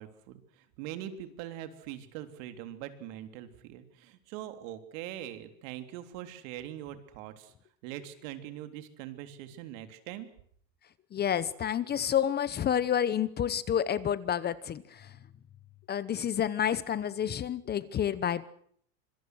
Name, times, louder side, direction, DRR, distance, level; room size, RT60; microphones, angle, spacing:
voice 1, 0.0-7.5 7.8-10.3, right 12 dB, 75° right, 9 dB, 3.6 m, -42 dB
voice 2, 11.1-15.1 15.9-18.4, left 9 dB, 25° left, 17 dB, 0.9 m, -29 dB
26.0 x 22.5 x 6.3 m, 0.62 s
cardioid pair, 155°, 40 cm